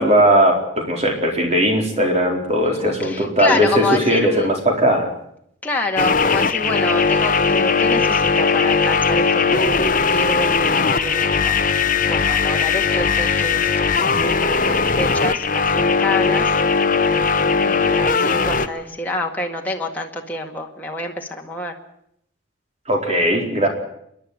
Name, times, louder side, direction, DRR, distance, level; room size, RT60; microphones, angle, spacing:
voice 1, 0.0-5.1 22.9-23.7, equal, 35° right, 2 dB, 4.3 m, -18 dB
voice 2, 2.6-4.5 5.6-11.6 12.1-16.5 17.7-21.7, left 2 dB, 10° left, 0 dB, 2.0 m, -27 dB
sound 1, 6.0-18.7, left 5 dB, 45° left, 1.0 m, -19 dB
27.5 x 11.5 x 9.5 m, 0.73 s
head